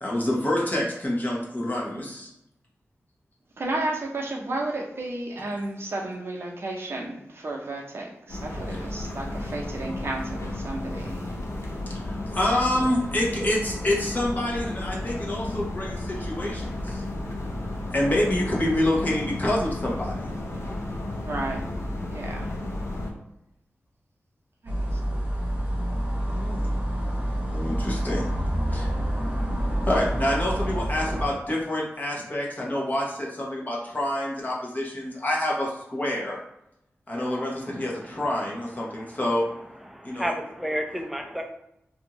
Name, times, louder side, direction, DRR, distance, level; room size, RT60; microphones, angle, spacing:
voice 1, 0.0-2.3 8.7-8.8 11.9-17.0 17.9-20.1 26.2-26.6 27.5-28.3 28.7-28.9 29.9-36.4 37.1-39.4 40.0-40.3, left 1 dB, 35° left, 0.8 m, -27 dB
voice 2, 3.6-11.2 21.2-21.6 22.1-22.5 24.6-25.0, right 2 dB, 55° right, 0.6 m, -32 dB
sound 1, 8.3-23.1, left 1 dB, 70° left, 0.6 m, -33 dB
sound 2, 24.7-31.3, equal, 20° right, 0.9 m, -27 dB
voice 3, 37.1-37.5 39.9-41.4, equal, 5° right, 0.4 m, -31 dB
2.6 x 2.3 x 2.9 m
wide cardioid pair, 70°, 5 cm